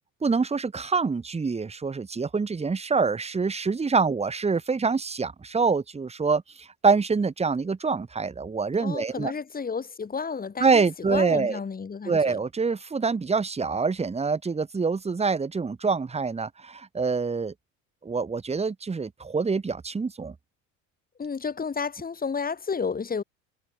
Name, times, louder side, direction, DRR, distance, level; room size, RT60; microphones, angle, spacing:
voice 1, 0.2-9.3 10.6-11.6 12.0-17.5 18.0-20.3, right 4 dB, 15° right, 2.6 m, -25 dB
voice 2, 8.8-12.4 21.2-23.2, left 5 dB, 25° left, 6.0 m, -31 dB
supercardioid pair, 115°, 38 cm